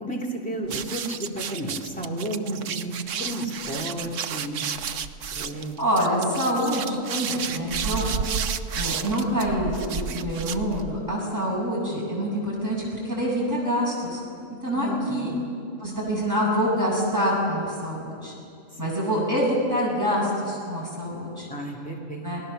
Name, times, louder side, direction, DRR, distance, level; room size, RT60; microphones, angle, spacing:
voice 1, 0.0-4.6 5.3-5.7 14.7-15.3 21.5-22.3, right 1 dB, 5° left, -2 dB, 3.1 m, -32 dB
sound 1, 0.7-11.1, right 7 dB, 65° right, 1.1 m, -32 dB
voice 2, 5.8-8.1 8.7-14.2 14.6-15.3 15.8-18.3 18.8-21.5 22.2-22.4, equal, 15° right, -4 dB, 7.4 m, -26 dB
28.5 x 19.0 x 6.9 m, 2.5 s
omnidirectional pair, 1.4 m